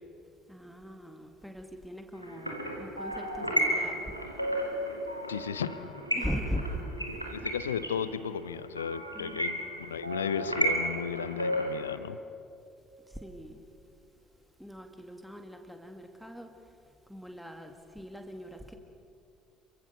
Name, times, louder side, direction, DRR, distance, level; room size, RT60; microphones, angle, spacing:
voice 1, 0.5-4.1 4.5-4.8 6.1-6.8 9.1-9.4 13.1-13.6 14.6-16.8 17.1-18.7, equal, ahead, 4 dB, 2.2 m, -40 dB
sound 1, 2.2-12.0, right 1 dB, 90° right, 1.7 m, -33 dB
voice 2, 5.3-5.9 7.3-12.2, left 7 dB, 75° left, 15 dB, 0.7 m, -34 dB
29.0 x 23.5 x 6.9 m, 2.6 s
figure-of-eight pair, 50°, 0 cm